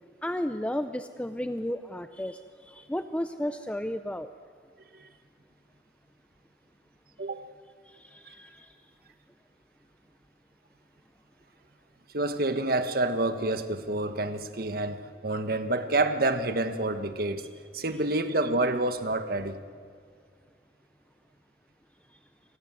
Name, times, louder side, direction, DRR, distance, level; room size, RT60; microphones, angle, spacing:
voice 1, 0.2-4.3 7.9-8.8, left 1 dB, 5° left, 9 dB, 0.6 m, -33 dB
voice 2, 7.2-7.5 12.1-17.5 17.7-19.6, right 2 dB, 55° right, 8 dB, 1.6 m, -28 dB
28.0 x 24.5 x 7.7 m, 2.1 s
head